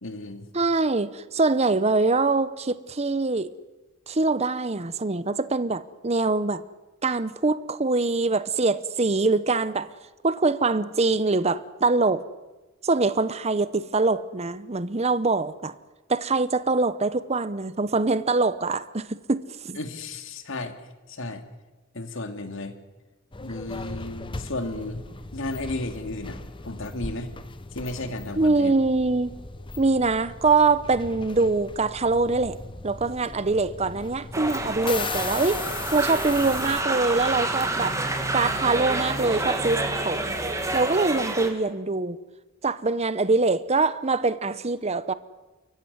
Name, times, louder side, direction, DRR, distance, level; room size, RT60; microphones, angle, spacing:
voice 1, 0.0-0.5 19.7-20.8 21.1-21.4 21.9-22.8 23.4-25.0 25.3-27.3 27.7-28.7, left 2 dB, 65° left, 2.4 m, -34 dB
voice 2, 0.5-3.5 4.1-6.6 7.0-9.9 10.2-12.2 12.8-15.7 16.1-19.8 28.4-29.4 29.8-32.6 32.8-35.6 35.9-38.0 38.3-40.3 40.7-42.2 42.6-45.1, right 3 dB, 30° right, 0.8 m, -24 dB
sound 1, 23.3-36.8, left 3 dB, 25° left, 0.9 m, -38 dB
sound 2, 34.3-41.5, right 2 dB, 15° right, 2.3 m, -28 dB
29.5 x 15.0 x 9.5 m
head